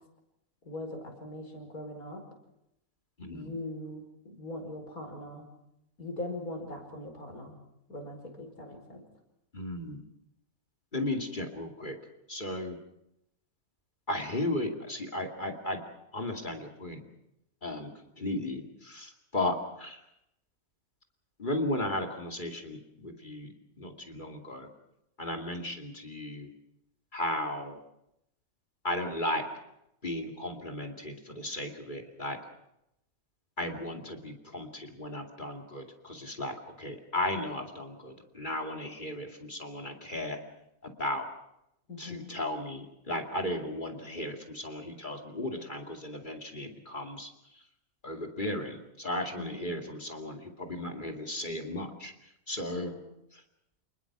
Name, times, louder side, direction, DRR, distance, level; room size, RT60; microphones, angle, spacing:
voice 1, 0.6-2.2 3.3-5.5 6.0-7.6 7.9-9.0 41.9-42.4 49.4-49.8 52.7-53.0, left 1 dB, 90° left, 3 dB, 5.4 m, -41 dB
voice 2, 3.2-3.5 9.5-10.0 10.9-12.0 12.3-12.8 14.1-15.8 16.1-17.0 17.6-17.9 18.2-20.0 21.4-24.7 25.2-26.5 27.1-27.8 28.8-29.4 30.0-32.4 33.6-40.4 40.8-41.2 42.0-47.6 48.0-52.1 52.5-52.9 53.3-53.4, left 1 dB, 35° left, 4 dB, 2.6 m, -35 dB
28.0 x 20.5 x 6.1 m, 0.82 s
omnidirectional pair, 1.5 m